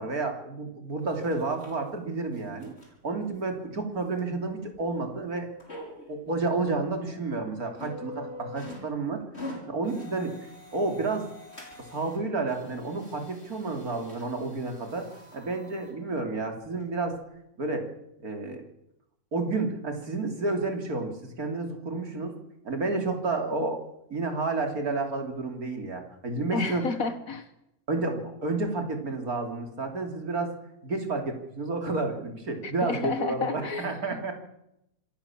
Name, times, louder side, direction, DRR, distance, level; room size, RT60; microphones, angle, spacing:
voice 1, 0.0-2.7 3.0-5.5 5.9-11.3 11.9-15.1 15.3-17.2 17.6-17.9 18.2-18.6 19.3-22.4 22.6-23.8 24.1-26.8 27.9-30.5 30.8-34.3, right 3 dB, 70° right, 4 dB, 3.6 m, -30 dB
sound 1, 1.1-1.8 2.3-2.9 3.3-3.4 4.2-4.3 4.7-4.9 5.6-6.1 6.6-6.7 7.0-7.3 7.7-8.9 9.2-12.2 12.5-15.9 16.6-16.7 17.1-17.2, left 1 dB, 45° left, 5.9 m, -45 dB
voice 2, 26.5-27.5 32.6-34.3, left 4 dB, 60° left, 10 dB, 1.7 m, -31 dB
26.0 x 15.0 x 7.4 m, 0.84 s
omnidirectional pair, 1.6 m